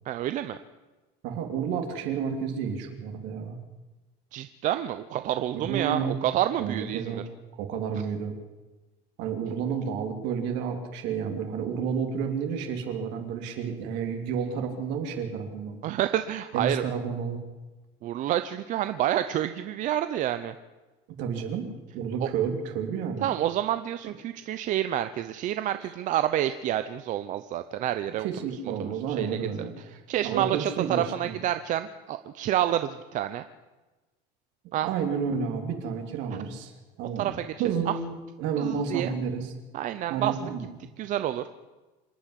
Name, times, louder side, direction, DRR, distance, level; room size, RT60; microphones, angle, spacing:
voice 1, 0.1-0.6 4.3-7.2 15.8-16.8 18.0-20.5 22.2-22.3 23.2-28.3 28.8-29.4 30.1-33.4 34.7-34.9 37.2-37.4 38.6-39.1 39.7-40.4 41.0-41.5, right 12 dB, 40° right, 10 dB, 0.7 m, -28 dB
voice 2, 1.2-3.6 5.5-6.2 6.6-7.3 7.6-8.3 9.2-15.8 16.5-17.4 21.2-21.7 21.9-23.3 28.2-29.7 30.2-31.4 34.8-36.7 37.0-39.5 40.1-40.7, right 6 dB, 60° right, 4 dB, 3.2 m, -31 dB
27.0 x 9.8 x 10.0 m, 1.2 s
cardioid pair, 165°, 21 cm